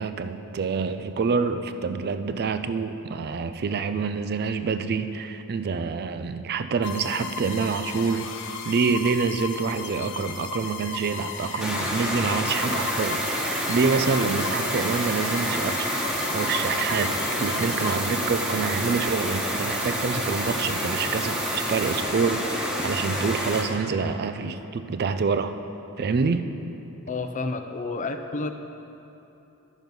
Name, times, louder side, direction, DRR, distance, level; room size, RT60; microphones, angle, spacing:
voice 1, 0.0-15.9 16.3-25.5 26.0-26.5, right 5 dB, 45° right, 10 dB, 0.4 m, -27 dB
sound 1, 6.8-18.7, left 6 dB, 60° left, 0.8 m, -36 dB
sound 2, 11.6-23.6, equal, 5° right, 1.2 m, -28 dB
sound 3, 12.5-22.0, right 6 dB, 70° right, 1.0 m, -36 dB
voice 2, 27.1-28.5, left 3 dB, 35° left, 7 dB, 0.5 m, -30 dB
12.0 x 6.1 x 5.3 m, 2.9 s
head